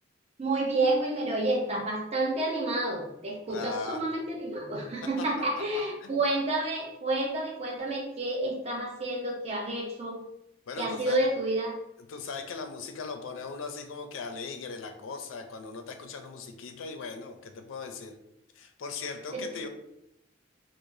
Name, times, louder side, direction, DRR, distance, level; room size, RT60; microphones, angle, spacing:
voice 1, 0.4-10.2 10.8-11.7 19.3-19.4, right 2 dB, 35° right, -2 dB, 0.6 m, -29 dB
voice 2, 3.5-4.1 5.2-5.3 6.0-6.2 10.7-11.2 12.0-18.2 18.5-19.7, left 4 dB, 85° left, 6 dB, 0.4 m, -39 dB
4.7 x 2.1 x 2.6 m, 0.86 s
head